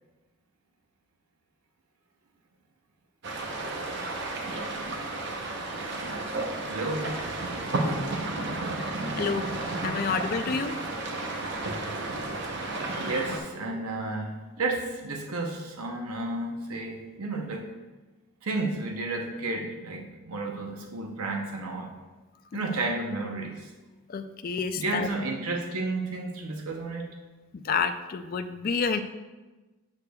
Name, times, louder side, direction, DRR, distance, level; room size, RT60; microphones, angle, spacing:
sound 1, 3.2-13.4, right 2 dB, 55° right, 0.8 m, -32 dB
voice 1, 6.7-7.2 12.9-17.7 18.4-21.9 22.5-23.7 24.8-27.1, right 2 dB, 85° right, 1 dB, 0.8 m, -32 dB
voice 2, 9.2-9.5 9.8-10.8 12.8-13.3 13.7-13.8 24.1-25.1 27.6-29.0, left 5 dB, 40° left, 8 dB, 0.3 m, -29 dB
8.2 x 6.7 x 2.3 m, 1.2 s
head